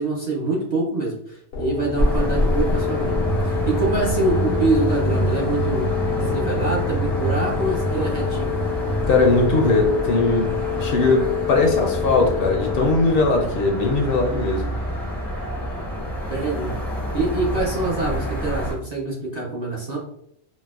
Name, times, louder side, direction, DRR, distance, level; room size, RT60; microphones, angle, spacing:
voice 1, 0.0-5.9 6.2-8.5 16.3-16.8 17.1-20.0, right 3 dB, 45° right, -4 dB, 0.6 m, -25 dB
sound 1, 1.5-13.2, left 8 dB, 90° left, 1.0 m, -28 dB
sound 2, 2.0-18.7, equal, ahead, 0.4 m, -26 dB
voice 2, 9.1-14.7, left 3 dB, 65° left, 2 dB, 0.7 m, -20 dB
4.0 x 2.1 x 2.3 m, 0.72 s
omnidirectional pair, 1.2 m